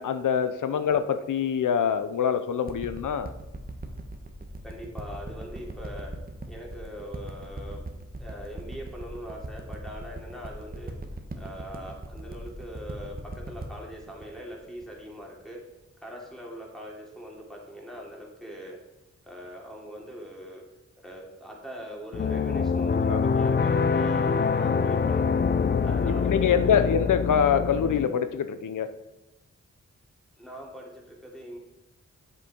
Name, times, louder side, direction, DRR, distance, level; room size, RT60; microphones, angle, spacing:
voice 1, 0.0-3.3 23.1-23.4 25.7-25.9 26.2-28.9, left 7 dB, 85° left, 11 dB, 0.7 m, -25 dB
sound 1, 2.7-15.4 16.0-16.1, right 2 dB, 30° right, 1.3 m, -39 dB
voice 2, 4.6-6.1 6.5-7.8 8.2-11.0 11.3-15.6 16.0-18.8 19.2-20.6 21.0-25.4 25.8-26.9 30.4-31.6, equal, ahead, -2 dB, 3.0 m, -42 dB
sound 2, 22.1-28.1, left 5 dB, 35° left, 0.5 m, -25 dB
8.3 x 7.8 x 4.4 m, 0.97 s
cardioid pair, 65°, 30 cm